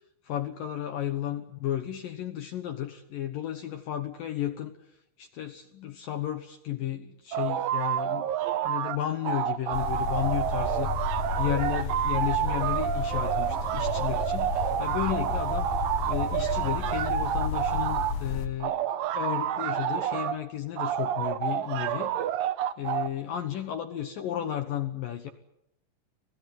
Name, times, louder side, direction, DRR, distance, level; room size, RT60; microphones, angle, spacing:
voice 1, 0.2-8.3 8.6-11.1 11.4-15.7 16.1-18.8 19.1-22.1 22.8-25.3, left 11 dB, 80° left, 7 dB, 1.9 m, -33 dB
sound 1, 7.3-9.0 9.2-18.2 18.6-20.4 20.8-23.1, right 10 dB, 80° right, 2.0 m, -29 dB
sound 2, 9.7-18.5, left 4 dB, 55° left, 2.4 m, -32 dB
27.0 x 18.5 x 9.4 m, 0.81 s
omnidirectional pair, 5.6 m